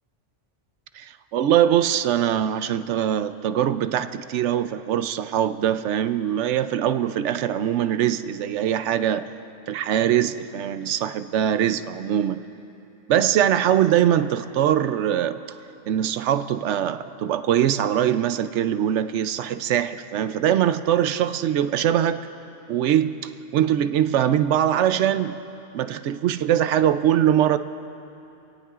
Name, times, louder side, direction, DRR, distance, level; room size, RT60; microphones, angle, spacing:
voice 1, 0.9-9.3 9.7-12.4 13.1-15.4 15.9-22.2 22.7-25.4 25.7-27.6, right 10 dB, 80° right, 11 dB, 0.9 m, -22 dB
27.0 x 17.5 x 2.4 m, 2.8 s
omnidirectional pair, 1.2 m